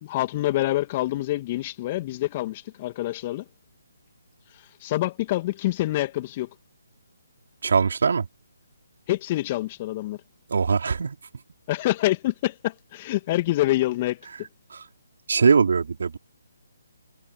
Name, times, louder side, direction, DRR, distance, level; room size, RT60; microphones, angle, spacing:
voice 1, 0.0-3.5 4.8-6.5 9.1-10.2 11.7-14.3, left 16 dB, 30° left, 2.0 m, -26 dB
voice 2, 7.6-8.3 10.5-11.2 14.7-14.8 15.3-16.2, right 5 dB, 60° right, 4.0 m, -21 dB
figure-of-eight pair, 145°, 0 cm